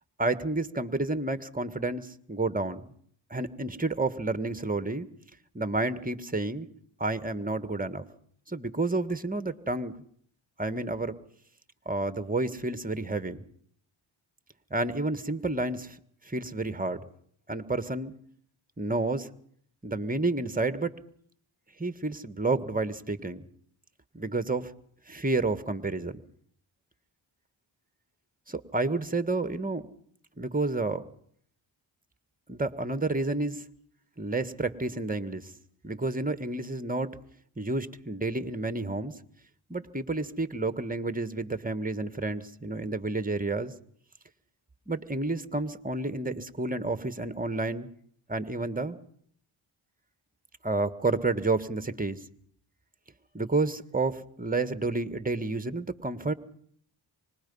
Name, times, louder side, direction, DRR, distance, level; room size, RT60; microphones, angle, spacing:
voice 1, 0.2-2.9 3.3-5.1 5.5-6.7 7.0-8.0 8.5-9.9 10.6-11.2 11.8-13.5 14.7-16.0 16.2-17.0 17.5-18.1 18.8-19.3 19.8-20.9 21.8-23.4 24.1-24.7 25.1-26.2 28.5-29.8 30.4-31.1 32.5-33.6 34.2-35.5 35.8-37.1 37.6-39.1 39.7-43.7 44.9-47.9 48.3-49.0 50.6-52.2 53.3-56.3, right 2 dB, 15° right, 12 dB, 1.6 m, -30 dB
25.0 x 20.5 x 5.5 m, 0.62 s
cardioid pair, 45°, 49 cm